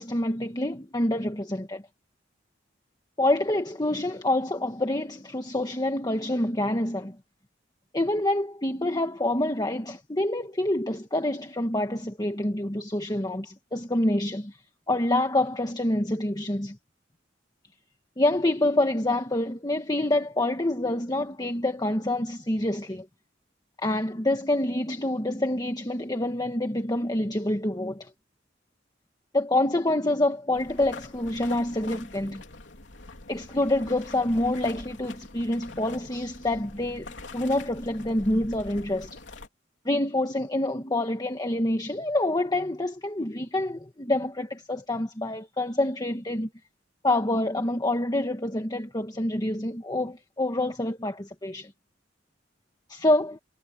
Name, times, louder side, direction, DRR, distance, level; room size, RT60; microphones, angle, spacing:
voice 1, 0.0-1.8 3.2-7.2 7.9-14.6 14.9-16.8 18.2-23.0 23.8-28.1 29.3-32.4 33.3-39.2 39.8-46.5 47.0-51.7 52.9-53.4, left 1 dB, 20° left, 1.6 m, -27 dB
sound 1, 30.5-39.5, left 2 dB, 75° left, 3.3 m, -44 dB
head